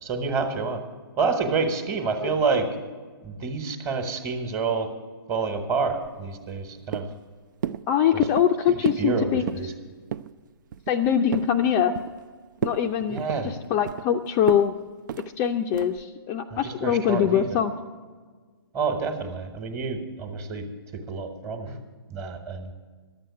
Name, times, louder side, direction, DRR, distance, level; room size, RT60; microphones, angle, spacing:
voice 1, 0.0-0.8 1.2-2.7 3.2-4.9 5.3-7.1 8.1-8.2 9.0-9.7 13.1-13.5 16.5-17.6 18.7-20.6 20.9-21.8 22.1-22.7, right 4 dB, 20° right, 7 dB, 1.4 m, -28 dB
sound 1, 6.0-6.7 6.9-7.3 7.6-7.8 8.2-8.5 8.8-9.1 9.4-9.7 10.1-10.3 10.7-11.5 11.9-12.3 12.6-12.8 13.2-14.1 14.5-14.7 15.1-15.3 15.7-16.0, right 9 dB, 55° right, 0.4 m, -32 dB
voice 2, 7.9-9.4 10.9-11.9 12.6-14.7 15.4-17.7, left 9 dB, 25° left, 5 dB, 0.5 m, -23 dB
11.5 x 7.7 x 9.5 m, 1.5 s
hypercardioid pair, 140°, 13 cm